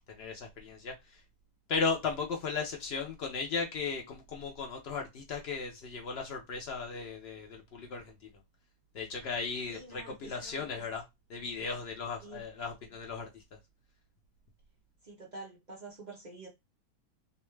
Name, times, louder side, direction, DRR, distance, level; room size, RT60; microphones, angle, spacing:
voice 1, 0.1-1.2 1.7-8.1 8.9-11.0 11.3-13.4, left 5 dB, 85° left, 0.5 m, -36 dB
voice 2, 9.7-10.3 12.2-12.4 15.0-16.5, right 2 dB, 55° right, 0.5 m, -47 dB
2.7 x 2.2 x 3.1 m
omnidirectional pair, 1.7 m